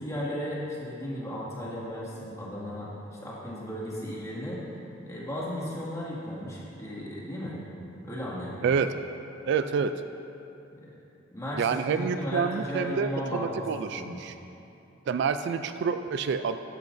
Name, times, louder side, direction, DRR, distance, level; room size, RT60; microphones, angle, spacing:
voice 1, 0.0-2.9 3.2-4.6 5.0-7.6 8.0-8.6 10.8-10.9 11.3-13.6 13.9-14.2, equal, 15° left, -6 dB, 2.1 m, -35 dB
voice 2, 8.6-8.9 9.5-10.0 11.6-14.3 15.1-16.6, right 6 dB, 60° right, 10 dB, 0.3 m, -28 dB
13.5 x 10.5 x 2.7 m, 2.8 s
head